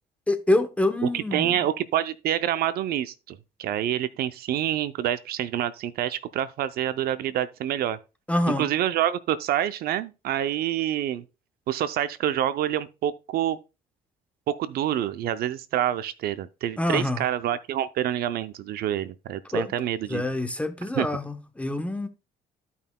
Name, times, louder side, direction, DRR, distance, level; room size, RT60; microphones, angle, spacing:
voice 1, 0.3-1.6 8.3-8.7 16.8-17.2 19.5-19.7 20.1-22.1, left 1 dB, 10° left, 0.9 m, -26 dB
voice 2, 1.0-8.0 8.6-11.2 11.7-13.6 14.5-20.2 20.9-21.1, right 11 dB, 65° right, 0.5 m, -27 dB
14.5 x 5.5 x 2.2 m
cardioid pair, 110°, 17 cm